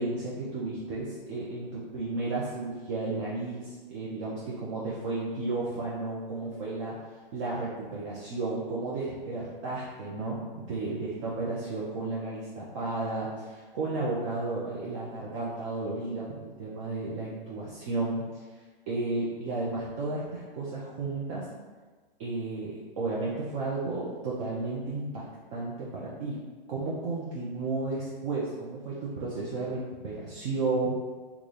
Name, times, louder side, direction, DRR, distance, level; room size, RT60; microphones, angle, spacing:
voice 1, 0.0-7.0 7.3-18.4 18.9-21.5 22.2-25.3 25.5-26.4 26.7-30.9, right 3 dB, 35° right, -7 dB, 0.6 m, -33 dB
3.2 x 2.3 x 3.9 m, 1.4 s
hypercardioid pair, 130°, 29 cm